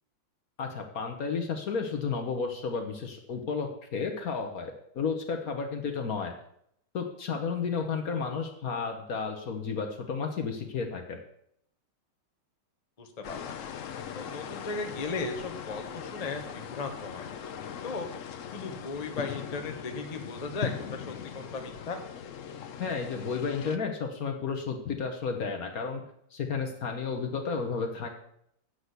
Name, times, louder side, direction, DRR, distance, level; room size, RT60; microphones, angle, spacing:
voice 1, 0.6-6.3 6.9-11.2 22.8-26.0 26.3-28.1, left 5 dB, 50° left, 4 dB, 1.2 m, -32 dB
voice 2, 13.0-13.5 14.1-17.3 17.8-18.1 18.5-22.1, left 3 dB, 30° left, 4 dB, 0.7 m, -36 dB
sound 1, 13.2-23.8, left 8 dB, 90° left, 0.6 m, -40 dB
8.2 x 5.9 x 8.0 m, 0.72 s
omnidirectional pair, 2.3 m